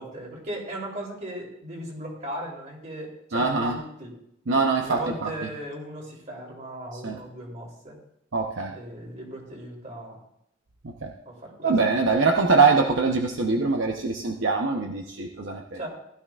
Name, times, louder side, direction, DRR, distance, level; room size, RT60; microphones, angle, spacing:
voice 1, 0.0-4.1 4.9-8.0 8.7-10.2 11.2-11.7 15.7-15.9, right 1 dB, 40° right, -1 dB, 3.2 m, -37 dB
voice 2, 3.3-3.8 4.5-5.3 6.9-7.2 8.3-8.8 10.8-11.1 11.6-15.8, right 4 dB, 70° right, 2 dB, 0.8 m, -23 dB
16.0 x 12.0 x 2.4 m, 0.77 s
head